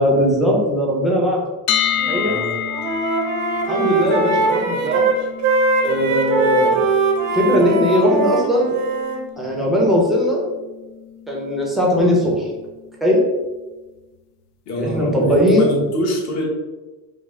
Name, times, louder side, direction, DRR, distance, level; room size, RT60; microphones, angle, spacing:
voice 1, 0.0-1.4 2.1-2.4 3.7-5.1 5.8-6.8 7.3-8.8 9.4-10.5 11.3-12.5 13.0-13.2 14.8-15.7, equal, ahead, -3 dB, 0.6 m, -18 dB
sound 1, 1.7-13.6, left 10 dB, 60° left, 0.6 m, -31 dB
Wind instrument woodwind instrument, 2.0-2.4 2.7-9.2, right 3 dB, 40° right, 0.7 m, -21 dB
voice 2, 2.2-2.6 14.7-16.5, equal, 35° left, -1 dB, 1.0 m, -24 dB
5.3 x 2.0 x 3.6 m, 1.2 s
cardioid pair, 150°, 47 cm